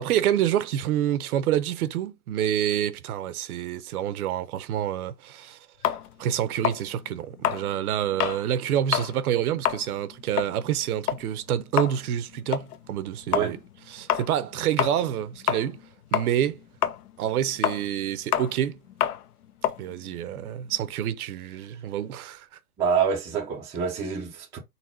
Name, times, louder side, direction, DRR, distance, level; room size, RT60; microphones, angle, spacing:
voice 1, 0.0-5.6 6.2-13.6 13.9-15.8 16.1-16.6 17.2-18.8 19.8-22.5, right 10 dB, 75° right, 0.7 m, -27 dB
sound 1, 5.8-8.4 8.8-9.1 9.5-15.9 16.1-20.9, left 10 dB, 80° left, 0.7 m, -28 dB
voice 2, 22.8-24.6, right 6 dB, 5° right, 0.4 m, -26 dB
4.1 x 2.1 x 4.3 m
supercardioid pair, 150°, 45 cm